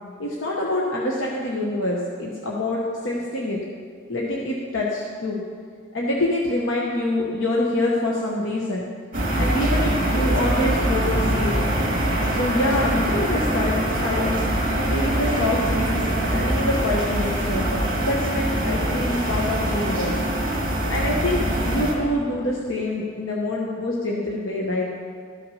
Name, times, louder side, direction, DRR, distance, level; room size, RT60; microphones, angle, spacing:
voice 1, 0.2-3.6 4.1-5.4 5.9-8.9 9.4-11.6 12.3-14.4 14.9-17.7 18.0-20.1 20.9-24.8, left 1 dB, 60° left, -3 dB, 1.0 m, -25 dB
sound 1, 9.1-21.9, right 1 dB, 40° right, 2.0 m, -23 dB
13.0 x 5.9 x 5.5 m, 2.1 s
head